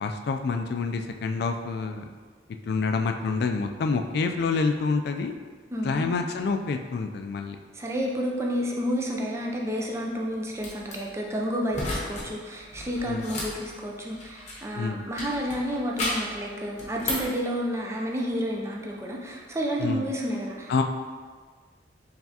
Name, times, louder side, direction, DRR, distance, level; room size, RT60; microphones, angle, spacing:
voice 1, 0.0-2.0 2.7-5.3 5.8-7.6 13.1-13.2 14.8-15.0 19.8-20.1 20.7-20.8, left 4 dB, 60° left, 5 dB, 0.3 m, -27 dB
voice 2, 5.7-6.1 7.7-20.8, equal, 15° right, -1 dB, 0.4 m, -30 dB
sound 1, 10.6-10.9 11.7-12.3 12.6-14.7 15.2-16.4 16.8-17.4, left 2 dB, 40° left, 0.9 m, -33 dB
4.5 x 3.3 x 2.8 m, 1.5 s
head